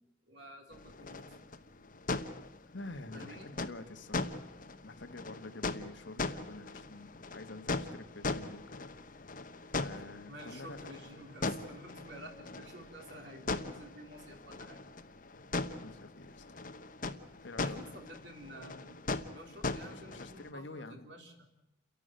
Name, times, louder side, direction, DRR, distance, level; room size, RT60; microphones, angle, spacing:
voice 1, 0.3-1.4 3.1-3.5 10.3-14.9 17.6-21.5, right 1 dB, 60° right, 2 dB, 4.0 m, -51 dB
sound 1, 0.7-20.5, left 3 dB, 45° left, 1.1 m, -40 dB
voice 2, 2.7-4.5 4.8-8.9 9.8-10.8 15.8-16.5 17.4-17.8 19.9-21.1, left 2 dB, 70° left, 9 dB, 1.4 m, -48 dB
29.5 x 12.0 x 9.0 m, 0.89 s
head